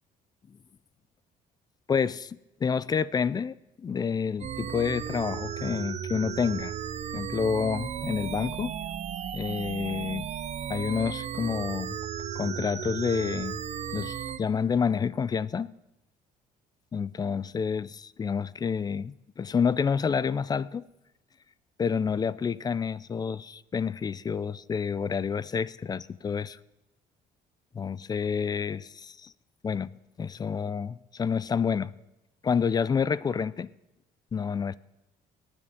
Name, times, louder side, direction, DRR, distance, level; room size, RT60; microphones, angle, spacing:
voice 1, 1.9-6.7 7.1-8.8 9.3-10.3 10.7-12.0 12.4-13.6 13.9-15.7 16.9-20.8 21.8-26.6 27.7-29.3 29.6-29.9 30.2-31.9 32.4-33.7 34.3-34.7, left 6 dB, 25° left, 0.3 m, -29 dB
sound 1, 4.4-14.4, right 9 dB, 40° right, 0.6 m, -35 dB
18.5 x 9.8 x 3.6 m
cardioid pair, 110°, 17 cm